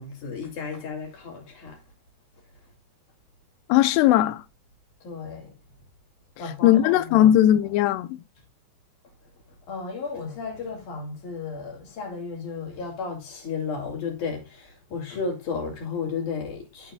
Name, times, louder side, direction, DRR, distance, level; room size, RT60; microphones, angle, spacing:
voice 1, 0.0-1.8 5.0-5.6 6.4-7.4 9.7-16.9, left 5 dB, 50° left, 3.5 m, -33 dB
voice 2, 3.7-4.4 6.6-8.2, left 12 dB, 85° left, 2.5 m, -18 dB
13.5 x 5.6 x 2.3 m
omnidirectional pair, 5.3 m